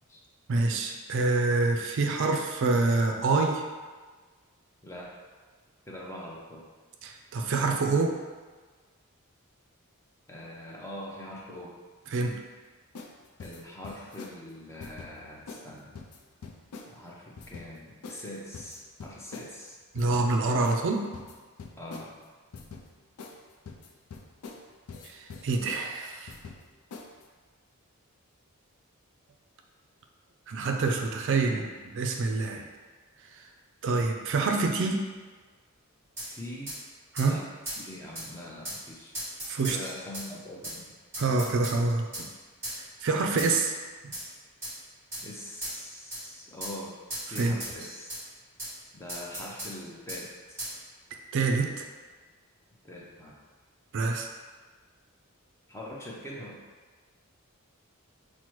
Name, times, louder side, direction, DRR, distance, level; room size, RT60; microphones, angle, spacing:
voice 1, 0.5-3.6 7.0-8.2 12.1-12.3 19.9-21.0 25.0-26.3 30.5-31.7 31.9-32.6 33.8-35.0 37.1-37.4 39.5-39.8 41.2-42.3 42.7-43.7 44.0-44.1 47.4-47.5 51.3-51.8 53.9-54.3, right 3 dB, 55° right, 2 dB, 0.4 m, -26 dB
voice 2, 4.8-5.1 5.9-6.6 10.3-11.8 13.4-15.9 16.9-19.8 21.8-22.2 31.3-31.7 36.3-36.7 37.2-37.5 37.8-39.1 39.6-40.9 45.2-47.0 47.3-48.1 48.9-50.6 52.8-53.4 55.7-56.6, left 1 dB, 10° left, -3 dB, 0.5 m, -43 dB
sound 1, 12.9-13.1 13.4-14.4 14.8-15.1 15.5-15.6 15.9-16.9 17.4-17.7 18.0-18.2 18.5-19.5 20.0-20.3 20.6-20.8 21.1-22.1 22.5-22.9 23.2-23.4 23.7-24.6 24.9-25.8 26.3-26.6 26.9-27.2, left 4 dB, 85° left, 0.4 m, -44 dB
sound 2, 36.2-36.3 36.7-36.8 37.2-37.3 37.7-37.8 38.1-38.3 38.6-38.8 39.1-40.3 40.6-40.8 41.1-41.8 42.1-42.3 42.6-42.8 43.4-43.6 44.1-44.3 44.6-44.7 45.1-45.2 45.6-45.8 46.1-46.2 46.6-46.8 47.1-48.2 48.6-48.7 49.1-49.7 50.1-50.2 50.6-50.7, right 1 dB, 10° right, 1.3 m, -37 dB
5.9 x 2.1 x 3.0 m, 1.4 s
head